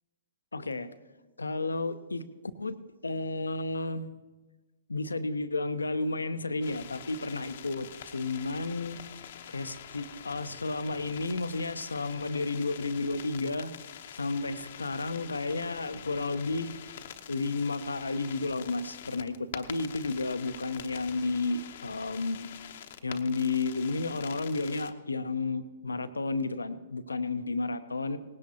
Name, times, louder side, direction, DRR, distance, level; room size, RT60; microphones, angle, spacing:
voice 1, 0.5-0.9 1.4-2.2 2.6-4.1 4.9-7.9 8.1-9.0 9.5-13.7 14.1-16.8 17.3-22.5 23.0-28.2, left 3 dB, 85° left, 11 dB, 0.7 m, -32 dB
sound 1, 6.6-24.9, left 9 dB, 60° left, 0.9 m, -46 dB
19.0 x 17.0 x 2.9 m, 1.3 s
hypercardioid pair, 120°, 0 cm